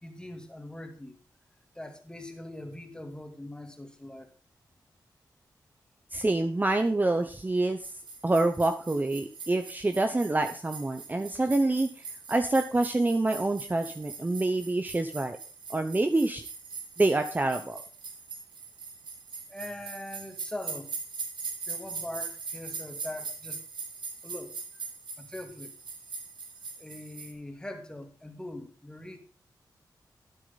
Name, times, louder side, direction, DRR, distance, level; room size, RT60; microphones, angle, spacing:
voice 1, 0.0-1.1 1.7-4.3 19.5-20.9 21.7-23.6 24.2-24.9 25.2-25.7 26.8-29.2, left 1 dB, 10° left, 5 dB, 2.4 m, -42 dB
voice 2, 6.1-7.8 8.2-11.9 12.3-15.4 15.7-16.4 17.0-17.8, right 2 dB, 25° right, 7 dB, 0.9 m, -26 dB
sound 1, 7.8-27.3, right 5 dB, 85° right, 2.2 m, -41 dB
11.5 x 9.8 x 4.1 m, 0.39 s
cardioid pair, 75°, 8 cm